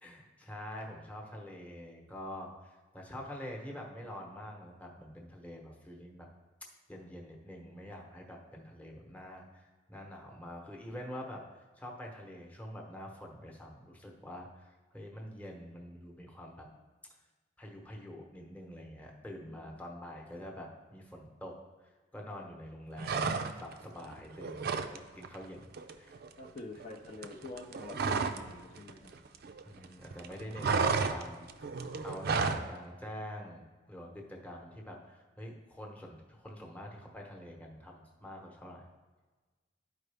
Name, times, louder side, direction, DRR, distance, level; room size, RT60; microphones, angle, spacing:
voice 1, 0.0-6.3 6.9-11.4 11.8-14.7 14.9-16.7 17.6-21.5 22.1-25.7 26.0-26.1 29.7-31.5 32.0-33.6 33.9-38.8, equal, 10° left, 0 dB, 1.0 m, -46 dB
sound 1, 23.0-23.8 24.1-25.0 25.2-25.4 25.7-28.5 28.8-29.9 30.1-32.7, right 5 dB, 55° right, 0.5 m, -32 dB
voice 2, 26.4-29.1, left 3 dB, 35° left, -2 dB, 0.6 m, -47 dB
12.0 x 4.7 x 3.4 m, 1.3 s
head